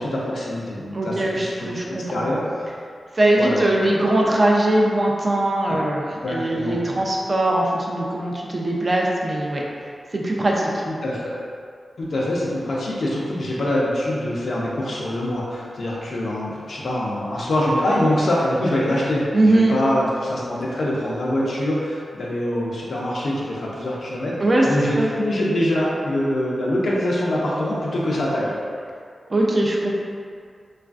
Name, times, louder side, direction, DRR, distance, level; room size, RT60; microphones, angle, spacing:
voice 1, 0.0-2.4 3.4-3.7 6.2-6.8 10.9-11.3 12.0-24.4 24.6-28.5, left 1 dB, 70° left, -5 dB, 0.6 m, -24 dB
voice 2, 0.9-2.2 3.1-9.6 10.1-10.8 19.3-19.8 24.4-25.1 29.3-29.9, right 1 dB, 40° right, -2 dB, 0.4 m, -20 dB
3.1 x 2.4 x 2.4 m, 2.2 s
wide cardioid pair, 75°, 0 cm